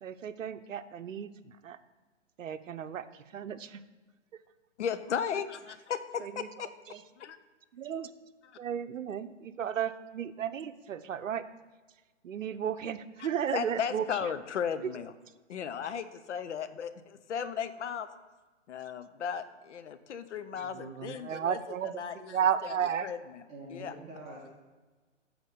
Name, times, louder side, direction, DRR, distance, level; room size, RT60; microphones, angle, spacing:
voice 1, 0.0-1.8 2.4-3.8 4.3-4.4 6.2-7.0 7.7-8.1 8.6-11.4 12.2-14.3 14.8-15.0 20.6-23.1, right 8 dB, 80° right, 11 dB, 0.7 m, -34 dB
voice 2, 4.8-6.7 7.2-7.4 13.5-15.1 15.5-18.1 18.7-21.6 22.0-22.2 23.0-23.4 23.7-23.9, left 7 dB, 65° left, 11 dB, 0.7 m, -35 dB
voice 3, 23.5-24.5, right 1 dB, 15° right, -5 dB, 1.7 m, -45 dB
7.9 x 4.4 x 6.8 m, 1.3 s
hypercardioid pair, 150°, 38 cm